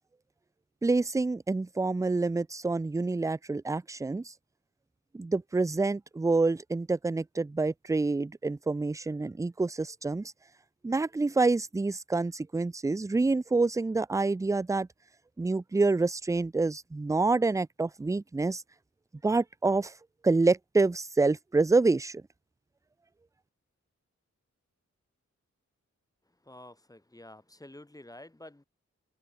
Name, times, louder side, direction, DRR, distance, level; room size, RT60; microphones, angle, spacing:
voice 1, 0.8-4.3 5.1-10.3 10.8-14.9 15.4-18.6 19.2-19.9 20.2-22.2, right 3 dB, 10° right, 0.3 m, -27 dB
voice 2, 26.4-28.6, left 1 dB, 10° left, 1.1 m, -49 dB
wide cardioid pair, 130°, 29 cm